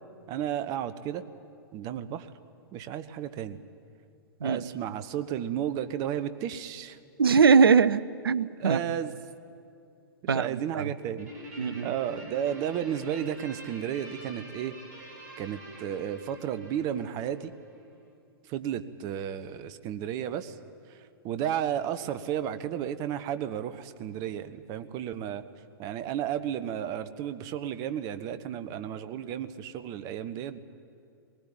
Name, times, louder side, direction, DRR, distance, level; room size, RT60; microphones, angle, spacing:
voice 1, 0.3-1.2 1.7-2.3 2.7-3.6 4.4-7.0 8.6-9.1 10.2-11.3 11.8-14.8 15.4-17.5 18.5-20.6 20.9-21.0 21.2-25.4 25.8-30.6, right 10 dB, 30° right, 12 dB, 0.9 m, -33 dB
voice 2, 7.2-9.0 10.3-10.9 11.6-11.9, right 5 dB, 70° right, 17 dB, 0.6 m, -22 dB
Guitar, 11.2-17.9, equal, 45° right, 5.9 m, -46 dB
20.0 x 19.0 x 9.2 m, 2.5 s
figure-of-eight pair, 110°, 13 cm